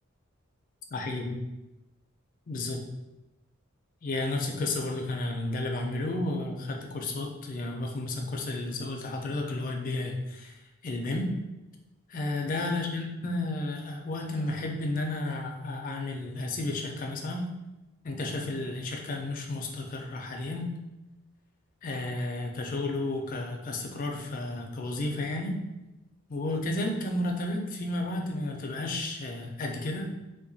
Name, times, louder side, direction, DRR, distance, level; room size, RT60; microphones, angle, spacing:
voice 1, 0.9-1.4 2.5-2.8 4.0-10.5 10.8-11.3 12.1-17.4 18.0-20.7 21.8-25.6 26.3-30.1, left 2 dB, 40° left, 2 dB, 0.3 m, -32 dB
2.8 x 2.1 x 2.6 m, 0.99 s
head